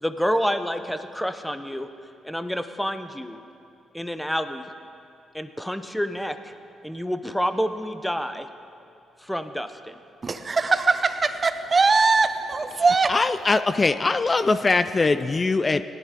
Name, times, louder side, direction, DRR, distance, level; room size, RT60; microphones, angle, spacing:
voice 1, 0.0-1.9 2.2-3.4 3.9-4.6 5.3-6.5 6.8-8.5 9.2-9.9, equal, 5° left, 9 dB, 0.8 m, -28 dB
voice 2, 10.2-13.1, right 4 dB, 40° right, 10 dB, 0.7 m, -21 dB
voice 3, 13.1-15.8, left 3 dB, 35° left, 11 dB, 0.4 m, -21 dB
17.5 x 11.0 x 3.7 m, 2.6 s
supercardioid pair, 55°, 0 cm